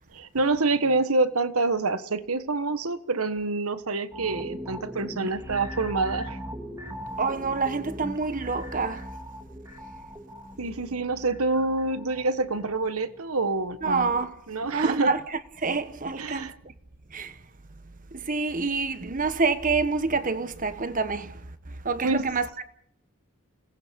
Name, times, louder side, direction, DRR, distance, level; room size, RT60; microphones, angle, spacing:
voice 1, 0.1-6.4 10.6-14.1 14.5-15.1 16.2-16.5 22.0-22.3, right 3 dB, 80° right, 1.4 m, -27 dB
sound 1, 4.1-13.4 13.8-13.9, equal, 15° right, 2.4 m, -39 dB
voice 2, 7.2-9.2 13.8-14.4 14.6-16.7 17.1-17.4 18.1-22.7, right 4 dB, 40° right, 1.2 m, -27 dB
28.5 x 18.5 x 5.3 m
head